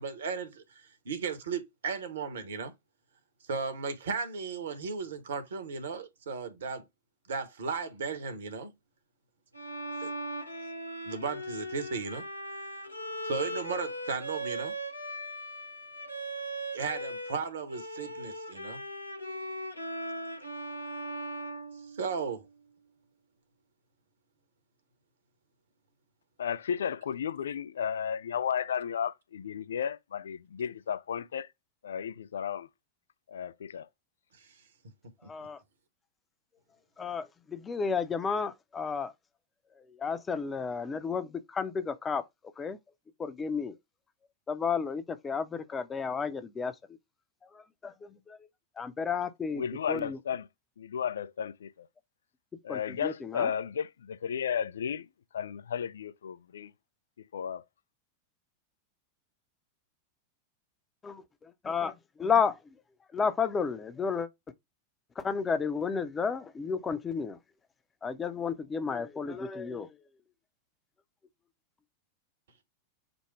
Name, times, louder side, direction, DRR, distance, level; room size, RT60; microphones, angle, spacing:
voice 1, 0.0-2.7 3.5-6.8 7.3-8.7 10.0-10.1 11.0-12.2 13.2-14.7 16.7-18.8 21.9-22.5 34.4-34.5, right 5 dB, 65° right, 1.2 m, -35 dB
Bowed string instrument, 9.5-17.4 17.7-22.5, right 1 dB, 85° left, 0.9 m, -39 dB
voice 2, 26.4-31.5 31.8-32.7 33.3-33.9 49.5-50.5 50.8-51.7 52.6-55.1 55.3-56.7 57.3-57.6, left 8 dB, 65° left, 0.5 m, -33 dB
voice 3, 35.3-35.6 37.0-39.1 40.0-42.2 42.6-42.8 43.2-43.7 44.5-46.7 47.8-47.9 48.3-48.4 48.8-49.6 49.9-50.2 52.7-53.5 61.0-61.2 61.6-61.9 62.2-62.6 63.1-64.3 65.2-67.4 68.0-69.9, left 5 dB, 20° left, 0.7 m, -32 dB
5.3 x 2.2 x 4.6 m
figure-of-eight pair, 90°, 0 cm